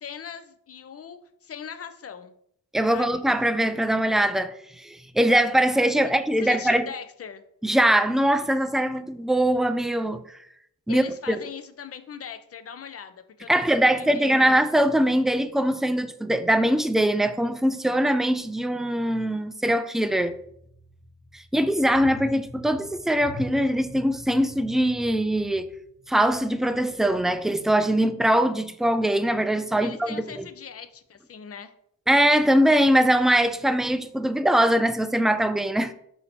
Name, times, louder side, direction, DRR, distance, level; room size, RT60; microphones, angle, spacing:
voice 1, 0.0-2.3 2.9-3.2 6.0-6.1 6.4-7.4 10.9-14.5 29.8-31.7, left 7 dB, 40° left, 0.6 m, -40 dB
voice 2, 2.7-6.9 7.6-10.2 10.9-11.4 13.5-20.3 21.3-25.7 26.1-30.4 32.1-35.9, right 1 dB, ahead, 0.3 m, -22 dB
sound 1, 20.1-27.6, left 1 dB, 20° left, 1.0 m, -44 dB
4.2 x 2.8 x 4.2 m
supercardioid pair, 50°, 35 cm